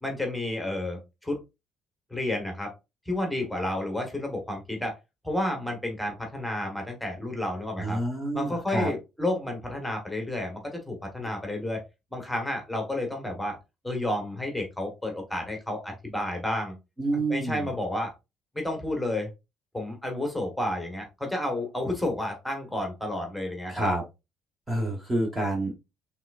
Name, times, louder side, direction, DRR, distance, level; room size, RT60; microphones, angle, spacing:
voice 1, 0.0-1.4 2.1-2.7 3.1-5.0 5.2-8.0 8.3-11.8 12.1-13.6 13.8-16.8 17.1-18.1 18.5-19.3 19.7-23.8, left 1 dB, ahead, 2 dB, 1.2 m, -31 dB
voice 2, 7.8-8.9 17.0-17.7 23.7-24.0 24.7-25.7, right 1 dB, 15° right, 1 dB, 1.1 m, -28 dB
5.8 x 3.4 x 2.3 m, 0.25 s
cardioid pair, 155°, 0 cm